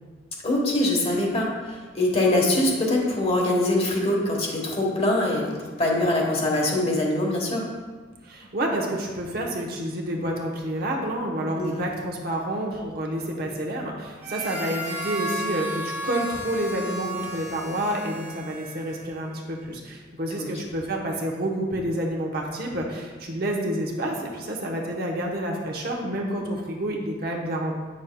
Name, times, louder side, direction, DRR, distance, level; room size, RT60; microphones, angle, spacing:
voice 1, 0.4-7.7 11.6-11.9 20.3-20.5, left 1 dB, 35° left, -1 dB, 1.2 m, -23 dB
voice 2, 8.2-27.7, right 1 dB, 55° right, -1 dB, 1.0 m, -29 dB
Harmonica, 14.2-19.2, right 1 dB, 10° right, 1.3 m, -34 dB
8.6 x 6.2 x 2.3 m, 1.4 s
head